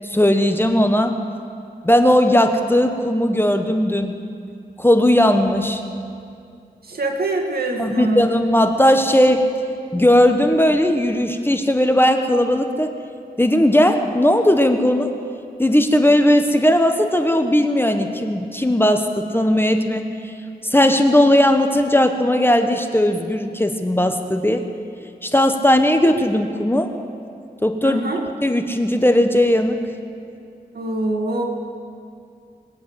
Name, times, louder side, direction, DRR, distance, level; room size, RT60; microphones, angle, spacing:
voice 1, 0.1-1.2 1.8-4.2 4.8-5.8 7.8-9.4 9.9-12.9 13.4-15.1 15.6-19.1 19.3-20.1 20.7-24.6 25.2-26.9 27.6-28.0 28.4-29.8, left 1 dB, 15° left, 6 dB, 1.1 m, -17 dB
voice 2, 6.8-8.3 27.8-28.2 30.7-31.4, right 2 dB, 65° right, 0 dB, 2.1 m, -24 dB
22.0 x 8.2 x 8.0 m, 2.4 s
cardioid pair, 55°, 17 cm